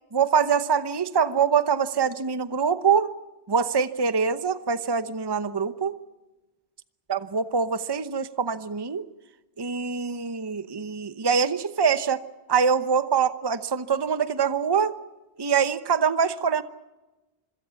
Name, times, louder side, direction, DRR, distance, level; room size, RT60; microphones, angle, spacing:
voice 1, 0.1-3.1 3.5-5.9 7.1-9.0 9.6-12.2 12.5-14.9 15.4-16.6, right 6 dB, 25° right, 12 dB, 0.8 m, -24 dB
27.0 x 22.5 x 7.1 m, 1.1 s
omnidirectional pair, 1.1 m